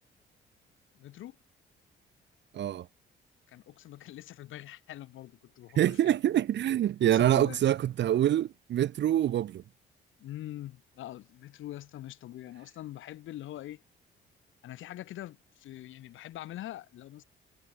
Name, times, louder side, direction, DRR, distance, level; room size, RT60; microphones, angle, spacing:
voice 1, 0.9-1.4 3.5-6.2 7.0-7.6 10.2-13.8 14.6-17.2, left 14 dB, 80° left, 2.3 m, -44 dB
voice 2, 2.5-2.9 5.8-9.6, right 11 dB, 65° right, 0.9 m, -25 dB
cardioid pair, 90°, 20 cm